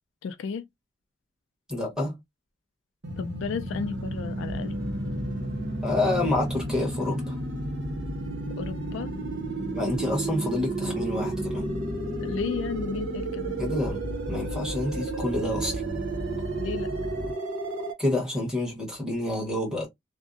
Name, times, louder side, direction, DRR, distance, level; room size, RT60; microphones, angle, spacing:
voice 1, 0.2-0.7 3.2-4.8 8.6-9.1 12.2-13.6 16.6-16.9, left 5 dB, 75° left, 0.3 m, -34 dB
voice 2, 1.7-2.2 5.8-7.3 9.7-11.6 13.6-14.0 14.3-15.8 18.0-19.9, left 2 dB, 5° right, 1.0 m, -28 dB
sound 1, 3.0-17.9, right 3 dB, 80° right, 0.8 m, -33 dB
sound 2, 3.7-17.3, left 2 dB, 55° right, 1.0 m, -37 dB
2.6 x 2.0 x 2.4 m
head